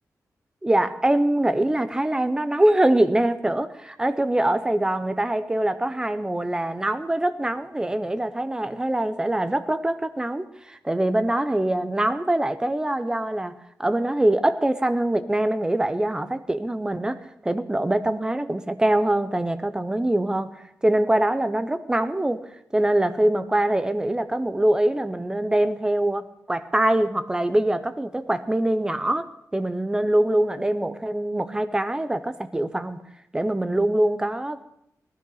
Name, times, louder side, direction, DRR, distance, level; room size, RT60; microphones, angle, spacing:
voice 1, 0.6-13.5 13.8-22.4 22.7-33.0 33.3-34.6, right 1 dB, 10° right, 11 dB, 0.8 m, -23 dB
18.5 x 13.0 x 4.0 m, 0.77 s
wide cardioid pair, 135°, 6 cm